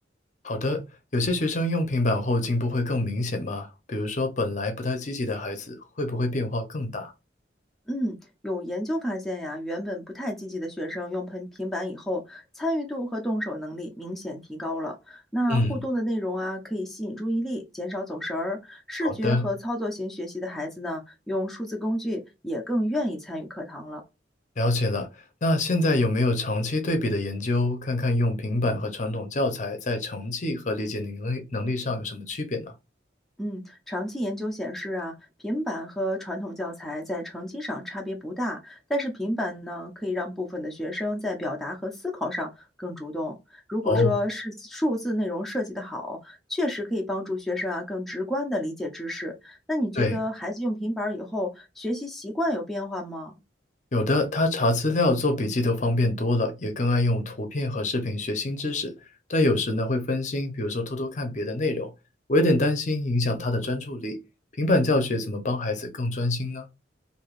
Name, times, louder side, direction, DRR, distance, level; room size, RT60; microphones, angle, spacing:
voice 1, 0.4-0.8 1.1-7.1 15.5-15.8 19.0-19.5 24.6-25.1 25.4-32.7 43.8-44.2 50.0-50.2 53.9-58.9 59.3-61.9 62.3-64.2 64.6-66.7, left 2 dB, 40° left, 0.7 m, -25 dB
voice 2, 8.4-24.0 33.4-35.1 35.4-53.3, left 1 dB, ahead, 0.5 m, -30 dB
3.3 x 2.6 x 2.4 m
head